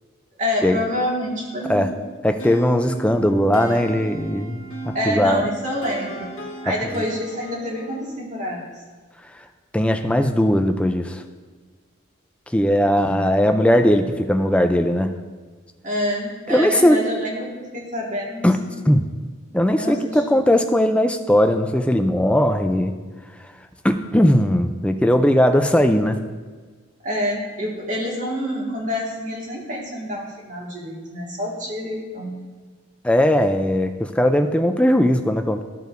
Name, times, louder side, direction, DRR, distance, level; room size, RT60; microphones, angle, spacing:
voice 1, 0.4-1.9 4.9-6.4 6.6-8.6 12.9-13.3 15.8-18.9 19.7-20.4 27.0-32.4, equal, 35° right, -3 dB, 1.8 m, -27 dB
voice 2, 2.2-5.4 9.7-11.2 12.5-15.1 16.5-17.0 18.4-18.6 18.8-19.1 19.5-22.9 23.8-26.2 33.0-35.6, equal, 5° left, 6 dB, 0.3 m, -18 dB
sound 1, 2.4-8.2, right 2 dB, 80° left, 1.1 m, -36 dB
13.5 x 5.3 x 2.6 m, 1.5 s
head